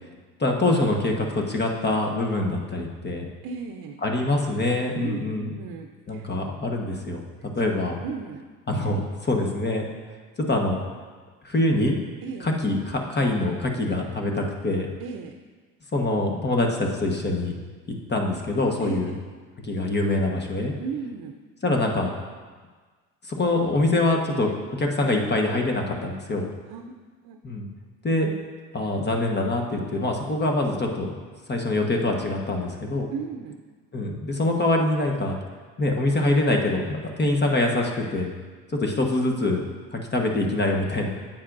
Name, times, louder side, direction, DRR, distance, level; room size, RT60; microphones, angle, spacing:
voice 1, 0.4-3.2 4.0-5.5 6.1-7.2 7.5-8.0 8.7-9.9 10.5-10.8 11.4-12.0 12.4-14.9 15.9-17.6 18.1-19.1 19.6-20.7 21.6-22.1 23.3-24.5 24.8-26.5 27.4-27.7 28.0-28.3 28.7-31.1 31.5-33.1 33.9-35.4 35.8-38.3 38.7-39.6 39.9-41.1, left 2 dB, 25° left, 1 dB, 1.2 m, -24 dB
voice 2, 3.4-4.0 4.9-6.3 7.5-7.8 8.0-8.5 12.2-12.5 15.0-15.3 18.8-19.2 20.8-21.4 26.7-27.0 27.2-27.4 33.1-33.6, right 5 dB, 65° right, 5 dB, 0.7 m, -35 dB
9.4 x 7.4 x 2.6 m, 1.4 s
supercardioid pair, 75°, 38 cm